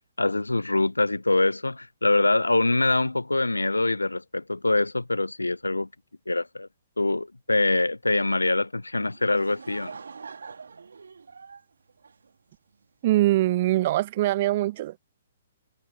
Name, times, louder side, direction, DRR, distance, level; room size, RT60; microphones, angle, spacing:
voice 1, 0.2-5.9 6.3-6.7 7.0-10.0, left 2 dB, 85° left, 0.5 m, -24 dB
Laughter / Crowd, 9.0-12.8, right 5 dB, 70° right, 2.0 m, -44 dB
voice 2, 13.0-15.0, right 16 dB, 45° right, 0.7 m, -23 dB
figure-of-eight pair, 125°, 0 cm